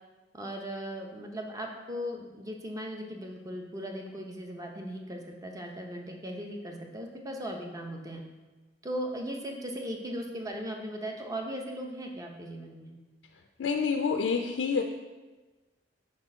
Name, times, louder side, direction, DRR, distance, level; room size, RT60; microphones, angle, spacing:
voice 1, 0.3-8.2 8.8-12.9, equal, 20° right, 2 dB, 0.7 m, -38 dB
voice 2, 13.6-14.8, left 5 dB, 80° left, 4 dB, 0.4 m, -27 dB
5.3 x 4.4 x 4.3 m, 1.2 s
head